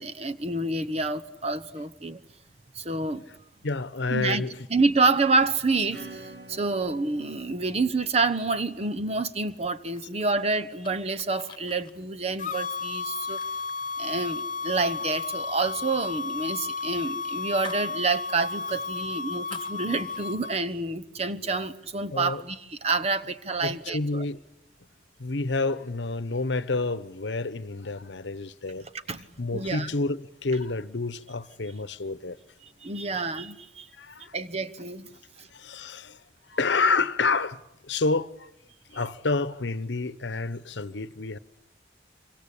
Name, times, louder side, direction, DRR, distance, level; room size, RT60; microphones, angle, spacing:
voice 1, 0.0-2.2 2.7-3.3 4.1-4.4 4.7-13.4 14.0-24.2 29.1-29.2 29.5-29.9 32.8-33.9 34.3-35.1 35.4-35.5, right 3 dB, 35° right, 1.0 m, -28 dB
voice 2, 3.6-4.7 18.7-18.8 22.1-22.4 23.6-24.4 25.2-28.9 29.2-32.4 34.0-34.3 35.5-36.2 36.5-38.5 38.9-41.4, left 3 dB, 75° left, 1.0 m, -29 dB
Acoustic guitar / Strum, 5.9-10.2, right 2 dB, 65° right, 2.3 m, -48 dB
sound 1, 9.9-14.5 14.9-15.2 15.5-17.9 18.3-18.4 18.8-20.4, left 6 dB, 25° left, 1.8 m, -48 dB
sound 2, 12.4-20.5, left 4 dB, 45° left, 1.0 m, -33 dB
26.5 x 24.5 x 8.4 m
head